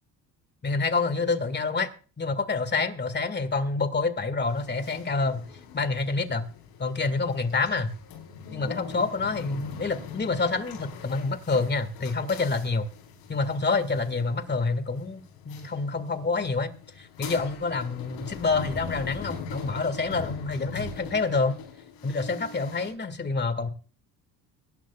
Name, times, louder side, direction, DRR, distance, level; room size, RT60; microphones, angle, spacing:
voice 1, 0.6-1.9 2.2-5.4 5.7-6.4 6.8-7.9 8.5-12.9 13.3-16.7 17.0-21.6 22.0-23.7, left 3 dB, 25° left, 2.0 m, -27 dB
sound 1, 4.5-22.9, left 6 dB, 85° left, 4.1 m, -42 dB
24.0 x 11.5 x 2.4 m
cardioid pair, 95°, 42 cm